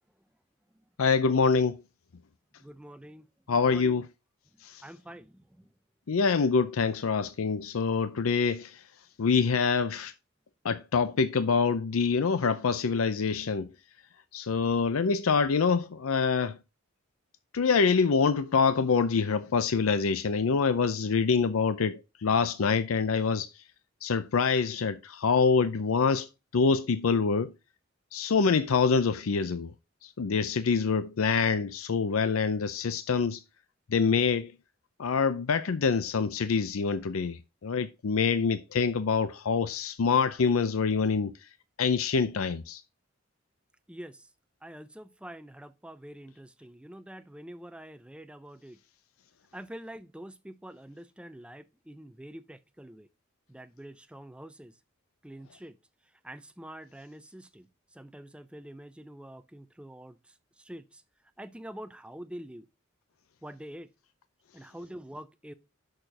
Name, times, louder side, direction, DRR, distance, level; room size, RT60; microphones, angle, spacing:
voice 1, 1.0-1.8 3.5-4.1 4.6-4.8 6.1-8.8 9.2-10.1 10.6-13.7 14.3-16.6 17.5-23.5 24.0-26.3 26.5-27.5 28.1-29.7 30.0-33.4 33.9-34.5 35.0-41.3 41.8-42.8, left 5 dB, 85° left, 0.5 m, -25 dB
voice 2, 2.6-3.3 3.7-4.0 4.8-5.7 43.9-44.3 44.6-48.8 49.5-53.1 53.5-54.7 55.2-55.8 56.2-57.7 57.9-61.0 61.4-62.7 63.4-63.9 64.5-65.5, right 1 dB, 5° right, 0.5 m, -46 dB
6.5 x 4.3 x 6.5 m
head